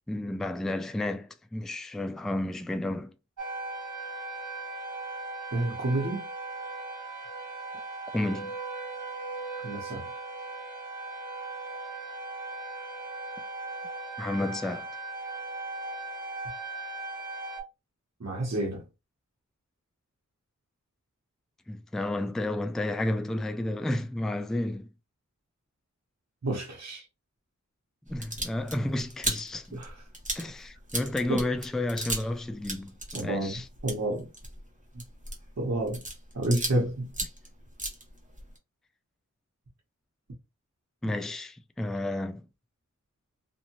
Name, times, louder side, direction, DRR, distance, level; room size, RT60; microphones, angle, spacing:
voice 1, 0.1-3.1 8.1-8.5 14.2-14.9 21.7-24.9 28.1-29.8 30.3-33.6 41.0-42.5, left 1 dB, ahead, 0.3 m, -31 dB
sound 1, 3.4-17.6, right 3 dB, 75° right, 1.4 m, -38 dB
voice 2, 5.5-6.3 9.6-10.1 18.2-18.8 26.4-27.1 29.7-30.0 31.3-31.4 33.1-34.3 34.9-35.0 35.6-36.0 36.3-37.1, right 1 dB, 55° right, 1.1 m, -30 dB
sound 2, 28.1-32.4 32.6-36.8 37.1-38.6, right 1 dB, 25° right, 1.1 m, -36 dB
2.6 x 2.5 x 2.9 m
wide cardioid pair, 45°, 31 cm